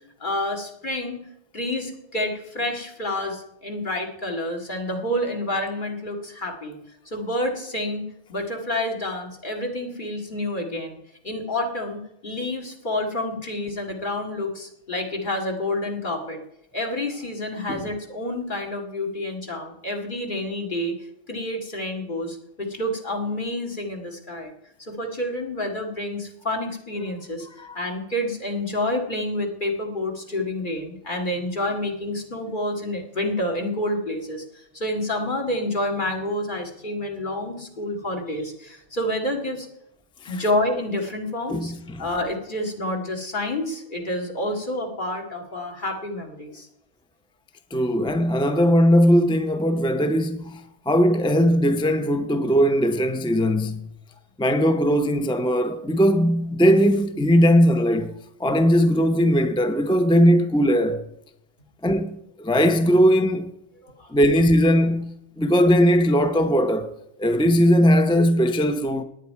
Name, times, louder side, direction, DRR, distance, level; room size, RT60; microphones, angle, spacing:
voice 1, 0.2-1.2 1.5-6.8 7.1-8.0 8.3-11.0 11.2-16.4 16.7-20.9 21.3-24.5 24.8-27.5 27.7-39.7 40.3-41.7 42.0-46.7 47.9-48.1 63.8-64.1, left 1 dB, 40° left, 2.1 m, -28 dB
voice 2, 41.5-42.0 47.7-50.6 50.9-53.9 54.4-58.1 58.4-61.0 61.8-63.5 64.1-66.9 67.2-69.0, equal, 5° left, 0.4 m, -19 dB
18.0 x 9.1 x 4.6 m
omnidirectional pair, 1.4 m